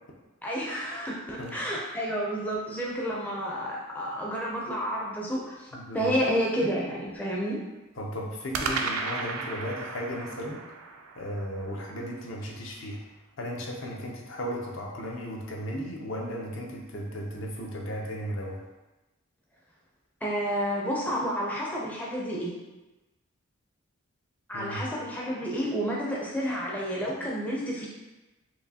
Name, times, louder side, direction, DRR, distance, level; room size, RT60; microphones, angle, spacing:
voice 1, 0.4-5.7 5.9-7.6 20.2-22.5 24.5-27.9, equal, 5° left, -4 dB, 0.4 m, -30 dB
sound 1, 0.8-2.7 8.5-12.8, right 4 dB, 85° right, 0.4 m, -36 dB
voice 2, 5.7-6.1 8.0-10.6 11.2-13.0 13.4-18.6 24.5-24.8, equal, 65° left, -1 dB, 0.7 m, -35 dB
4.5 x 2.7 x 2.7 m, 1.1 s
head